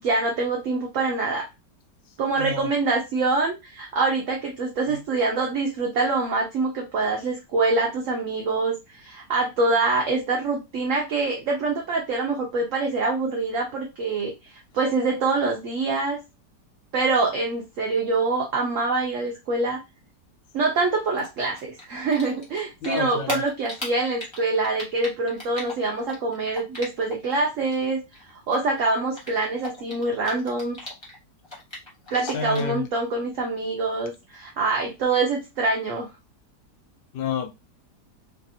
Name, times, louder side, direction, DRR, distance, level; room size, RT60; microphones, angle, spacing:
voice 1, 0.0-1.5 2.2-16.2 16.9-19.8 20.5-28.0 28.5-30.8 32.1-36.1, right 3 dB, 65° right, 0.8 m, -25 dB
voice 2, 2.4-2.7 4.9-5.0 22.8-23.5 32.1-32.9 37.1-37.5, left 6 dB, 90° left, 1.3 m, -30 dB
Typing, 21.2-22.6 22.8-27.3 27.6-31.1 31.4-32.8, left 2 dB, 20° left, 0.9 m, -37 dB
3.3 x 2.4 x 2.6 m
omnidirectional pair, 1.9 m